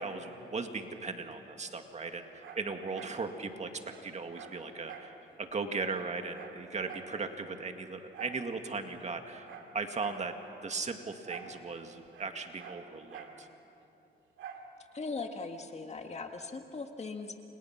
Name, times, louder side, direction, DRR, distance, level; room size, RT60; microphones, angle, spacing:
voice 1, 0.0-9.5 9.7-10.3 10.6-13.5, right 4 dB, 35° right, 5 dB, 2.1 m, -38 dB
Dog, 1.9-3.2 3.5-3.6 3.9-5.2 5.5-5.6 5.9-7.2 8.1-8.5 8.9-10.3 11.2-11.6 11.8-13.4 14.4-14.7 15.2-15.3, right 7 dB, 75° right, 2.5 m, -48 dB
voice 2, 14.9-17.4, left 4 dB, 35° left, 5 dB, 1.9 m, -39 dB
29.5 x 27.0 x 6.0 m, 2.8 s
cardioid pair, 90°, 20 cm